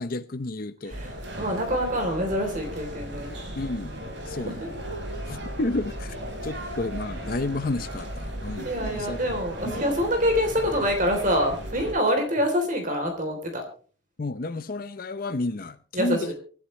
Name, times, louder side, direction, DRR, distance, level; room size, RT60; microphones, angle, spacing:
voice 1, 0.0-1.0 3.6-4.0 4.3-4.8 5.3-6.2 6.4-9.2 9.6-9.8 14.2-16.3, left 2 dB, 45° left, 0.6 m, -31 dB
voice 2, 0.8-3.3 4.3-4.7 6.5-6.7 8.6-13.6 15.9-16.3, equal, 40° right, 3.4 m, -26 dB
sound 1, 0.9-11.9, equal, 65° right, 4.9 m, -36 dB
25.5 x 11.5 x 3.2 m
head